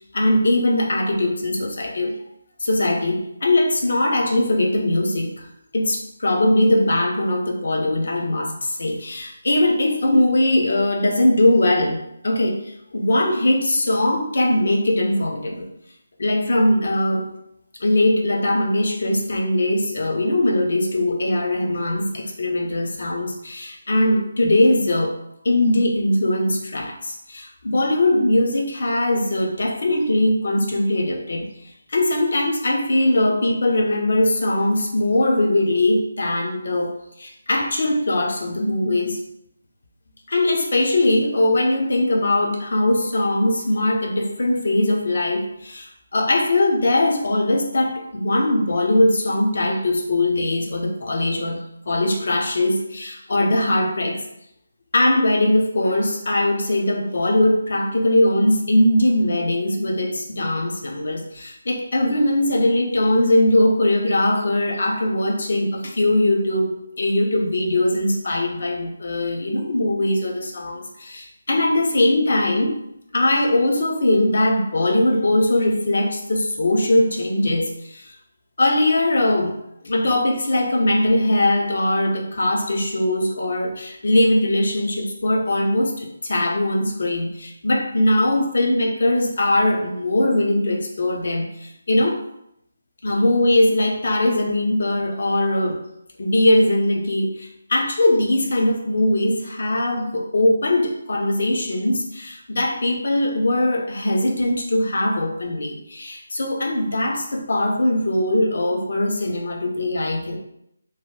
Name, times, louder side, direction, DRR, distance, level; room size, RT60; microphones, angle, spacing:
voice 1, 0.1-2.2 2.6-5.5 5.7-15.7 16.2-17.3 17.8-25.2 25.4-31.5 31.9-39.2 40.3-51.6 51.9-54.2 54.9-72.8 73.1-78.1 78.6-79.6 79.8-92.2 93.0-95.8 96.2-110.4, left 1 dB, 65° left, 1 dB, 0.6 m, -20 dB
3.0 x 2.2 x 3.2 m, 0.77 s
figure-of-eight pair, 160°, 0 cm